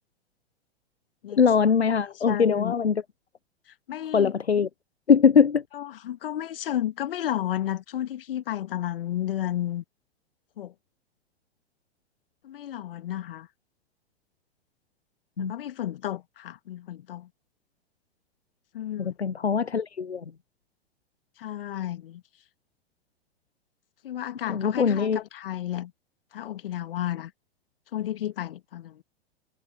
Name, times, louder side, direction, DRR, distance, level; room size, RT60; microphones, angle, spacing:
voice 1, 1.4-3.0 4.1-4.7 5.1-5.6 15.4-15.5 19.0-20.2 24.5-25.2, left 6 dB, 90° left, 0.7 m, -21 dB
voice 2, 2.0-2.8 3.7-4.3 5.7-9.8 10.6-10.7 12.4-13.5 15.4-17.3 18.7-19.1 21.4-22.2 24.0-25.9 26.3-27.3 27.9-29.0, left 12 dB, 60° left, 1.5 m, -32 dB
figure-of-eight pair, 100°, 31 cm